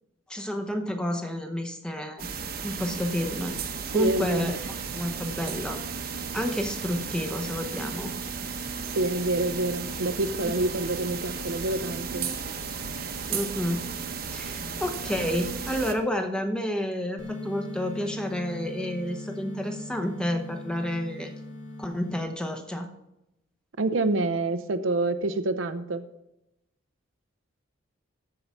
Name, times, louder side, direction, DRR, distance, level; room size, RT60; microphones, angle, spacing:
voice 1, 0.3-2.3 2.6-3.6 3.9-5.8 6.3-8.1 13.3-13.8 14.3-21.3 21.8-22.9, left 1 dB, 5° left, 5 dB, 0.8 m, -30 dB
sound 1, 2.2-15.9, right 5 dB, 50° right, 0.9 m, -34 dB
voice 2, 3.9-4.5 8.8-12.3 23.8-26.0, right 2 dB, 80° right, 11 dB, 0.6 m, -27 dB
sound 2, 17.2-22.2, left 1 dB, 65° left, 1.6 m, -39 dB
13.5 x 4.7 x 5.4 m, 0.87 s
head